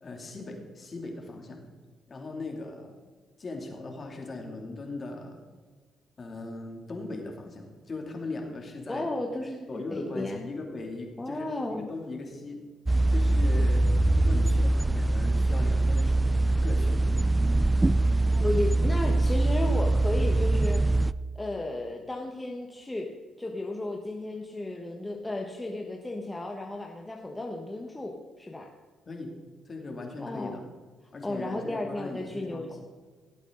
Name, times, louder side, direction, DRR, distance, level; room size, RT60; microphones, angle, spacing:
voice 1, 0.0-1.6 2.1-3.0 3.4-5.4 6.2-9.1 9.7-12.6 13.1-13.8 14.2-17.4 29.1-29.3 29.6-30.6 31.1-32.8, left 2 dB, 40° left, 2 dB, 2.8 m, -39 dB
voice 2, 8.9-10.4 11.2-11.9 18.3-20.8 21.3-23.1 23.4-28.7 30.2-30.5 31.2-32.8, left 2 dB, 15° left, 1 dB, 1.3 m, -34 dB
sound 1, 12.9-21.1, right 2 dB, 15° right, 0.3 m, -23 dB
17.5 x 8.2 x 3.9 m, 1.5 s
cardioid pair, 90°, 0 cm